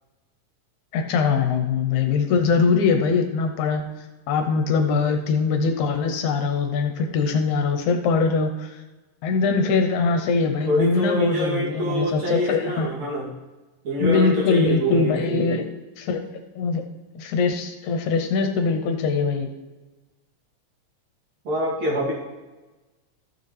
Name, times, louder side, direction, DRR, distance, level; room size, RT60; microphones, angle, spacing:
voice 1, 0.9-3.8 4.3-8.7 9.2-12.9 14.0-15.7 16.0-16.2 16.6-16.8 17.2-19.5, left 5 dB, 75° left, 6 dB, 2.0 m, -22 dB
voice 2, 10.7-13.3 13.8-15.5 18.4-18.5 21.5-22.1, equal, 60° right, -6 dB, 3.7 m, -25 dB
14.5 x 6.8 x 3.3 m, 1.2 s
omnidirectional pair, 3.6 m